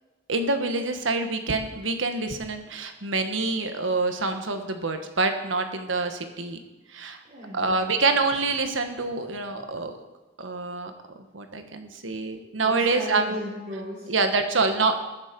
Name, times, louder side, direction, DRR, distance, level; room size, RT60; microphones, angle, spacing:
voice 1, 0.3-6.6 6.9-7.2 7.5-9.9 10.4-10.9 11.3-13.3 14.1-14.9, right 3 dB, 85° right, 7 dB, 1.4 m, -26 dB
voice 2, 7.2-8.0 12.6-14.1, equal, 40° right, -6 dB, 3.6 m, -36 dB
21.0 x 7.4 x 5.3 m, 1.2 s
head